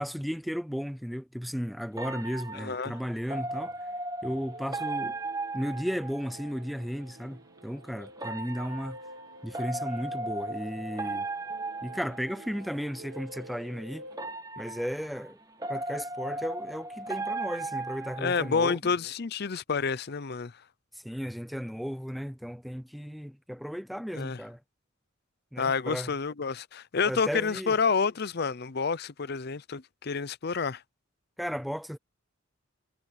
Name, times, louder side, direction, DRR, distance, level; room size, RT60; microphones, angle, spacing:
voice 1, 0.0-3.7 4.2-5.2 5.5-9.0 9.4-11.3 11.8-14.1 14.6-15.4 15.7-18.8 20.9-24.6 25.5-26.1 27.0-27.8 31.4-32.0, equal, ahead, 0.5 m, -35 dB
sound 1, 2.0-6.6 8.2-12.8 14.1-18.7, right 2 dB, 20° right, 1.5 m, -37 dB
voice 2, 2.5-2.9 18.2-20.5 24.1-24.4 25.6-30.8, left 5 dB, 50° left, 0.6 m, -29 dB
sound 2, 4.2-14.3, right 1 dB, 75° right, 1.8 m, -49 dB
head